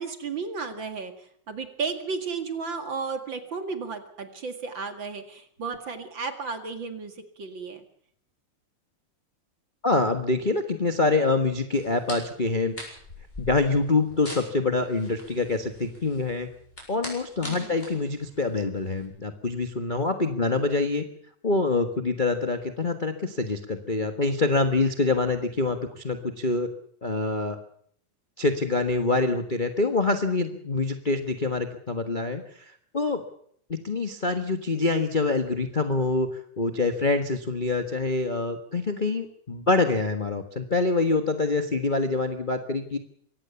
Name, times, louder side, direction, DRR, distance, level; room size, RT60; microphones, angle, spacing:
voice 1, 0.0-7.8 17.4-17.8, right 5 dB, 40° right, 7 dB, 2.5 m, -34 dB
voice 2, 9.8-12.7 13.4-16.5 16.9-21.0 21.4-26.7 27.0-27.6 28.4-32.4 32.9-33.2 33.7-36.3 36.6-43.0, left 3 dB, 40° left, 6 dB, 0.6 m, -25 dB
sound 1, 11.7-19.0, left 1 dB, 15° left, 7.7 m, -43 dB
23.5 x 17.5 x 7.0 m, 0.64 s
omnidirectional pair, 3.5 m